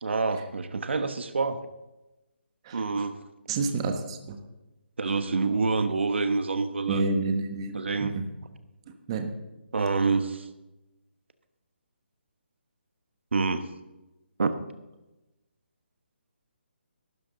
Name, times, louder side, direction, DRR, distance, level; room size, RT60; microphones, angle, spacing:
voice 1, 0.0-1.6 2.7-3.2 5.0-7.0 7.7-8.2 9.7-10.5 13.3-13.6 14.4-14.5, right 4 dB, 75° right, 9 dB, 1.2 m, -27 dB
voice 2, 2.6-3.1 3.5-4.4 6.8-8.3 8.9-9.4, right 3 dB, 25° right, 6 dB, 1.2 m, -30 dB
15.5 x 12.5 x 3.9 m, 1.0 s
hypercardioid pair, 165°, 6 cm